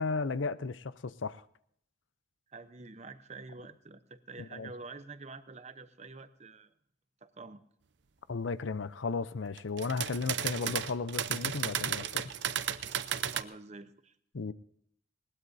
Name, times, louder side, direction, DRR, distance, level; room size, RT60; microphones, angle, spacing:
voice 1, 0.0-1.4 4.5-4.7 8.3-12.3 14.3-14.5, left 4 dB, 80° left, 0.6 m, -34 dB
voice 2, 2.5-6.7 7.2-7.6 13.3-14.2, right 3 dB, 35° right, 0.8 m, -47 dB
sound 1, 9.6-13.4, right 9 dB, 65° right, 0.6 m, -34 dB
20.5 x 19.0 x 2.7 m
head